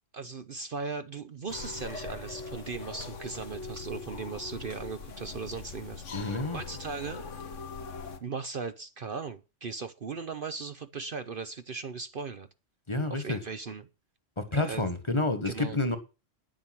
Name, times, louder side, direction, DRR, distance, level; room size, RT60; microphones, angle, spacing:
voice 1, 0.1-7.2 8.2-12.5 13.1-13.9 14.5-14.8 15.4-15.8, right 4 dB, 50° right, 0.9 m, -38 dB
sound 1, 1.5-8.2, left 4 dB, 80° left, 1.7 m, -41 dB
voice 2, 6.1-6.6 12.9-13.4 14.4-16.0, left 2 dB, 25° left, 1.5 m, -29 dB
10.5 x 7.7 x 5.9 m
omnidirectional pair, 1.3 m